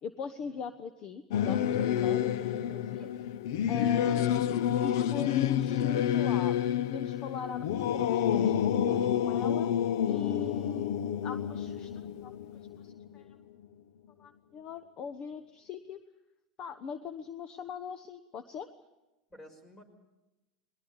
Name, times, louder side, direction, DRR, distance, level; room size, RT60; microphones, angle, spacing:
voice 1, 0.0-3.1 3.7-6.6 6.9-9.7 10.0-10.9 11.2-12.3 12.8-13.4 14.2-16.0 16.6-18.7, left 6 dB, 45° left, 12 dB, 1.1 m, -41 dB
Singing / Musical instrument, 1.3-13.2, left 10 dB, 75° left, 0.8 m, -29 dB
voice 2, 2.8-3.2 19.3-19.8, equal, 20° left, 8 dB, 5.3 m, -54 dB
20.0 x 19.5 x 8.6 m, 1.0 s
supercardioid pair, 115°, 2 cm